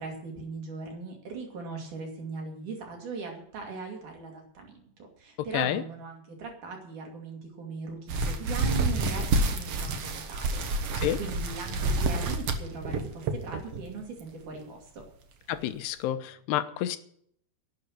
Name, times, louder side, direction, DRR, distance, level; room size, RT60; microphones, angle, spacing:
voice 1, 0.0-10.6 11.2-15.0, right 4 dB, 50° right, 2 dB, 3.7 m, -39 dB
sound 1, 8.1-13.8 14.2-14.4 15.0-15.1 15.5-15.6, right 2 dB, 80° right, 1.3 m, -28 dB
voice 2, 15.5-17.0, left 12 dB, 85° left, 10 dB, 2.9 m, -29 dB
12.0 x 8.1 x 9.8 m, 0.65 s
omnidirectional pair, 4.8 m